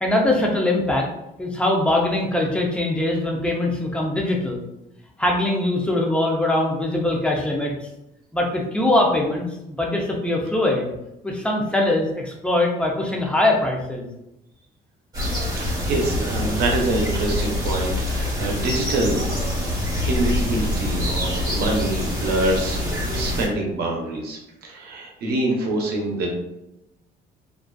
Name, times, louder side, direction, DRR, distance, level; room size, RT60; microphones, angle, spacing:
voice 1, 0.0-1.1 1.4-4.6 5.2-7.7 8.3-10.9 11.2-14.1, left 1 dB, 5° left, -1 dB, 0.5 m, -22 dB
sound 1, 15.1-23.5, left 1 dB, 25° right, 1.2 m, -25 dB
voice 2, 15.6-19.3 20.1-22.9 23.1-26.3, right 2 dB, 70° right, 0 dB, 0.7 m, -25 dB
2.5 x 2.3 x 2.2 m, 0.88 s
cardioid pair, 110°, 17 cm